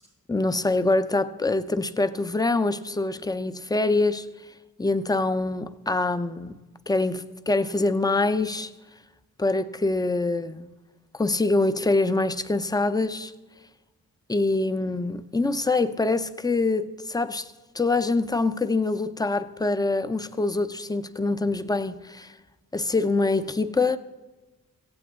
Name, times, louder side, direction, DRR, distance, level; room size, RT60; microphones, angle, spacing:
voice 1, 0.3-4.3 4.8-6.5 6.9-8.7 9.4-10.7 11.1-13.3 14.3-17.5 17.7-22.3 22.7-24.0, left 3 dB, 10° left, 0.6 m, -25 dB
17.0 x 16.0 x 3.6 m
wide cardioid pair, 90°, 36 cm